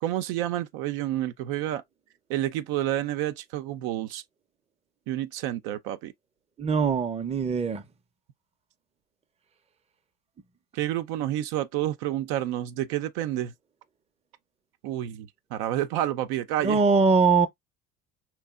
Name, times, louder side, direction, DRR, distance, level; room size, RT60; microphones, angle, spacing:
voice 1, 0.0-1.8 2.3-4.2 5.1-6.1 10.7-13.5 14.8-16.8, right 13 dB, 70° right, 0.7 m, -29 dB
voice 2, 6.6-7.8 16.6-17.5, right 5 dB, 15° right, 0.6 m, -22 dB
4.1 x 3.1 x 2.3 m
hypercardioid pair, 70°, 41 cm